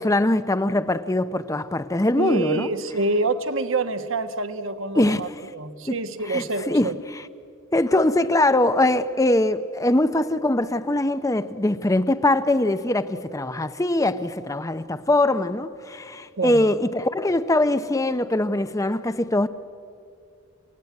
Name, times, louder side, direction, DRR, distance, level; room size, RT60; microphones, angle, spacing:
voice 1, 0.0-2.7 5.0-5.3 5.9-6.0 6.3-7.3 7.7-19.5, left 1 dB, 15° left, 0.6 m, -22 dB
voice 2, 2.2-6.9 16.4-16.6, right 3 dB, 65° right, 1.2 m, -27 dB
29.5 x 16.5 x 9.6 m
head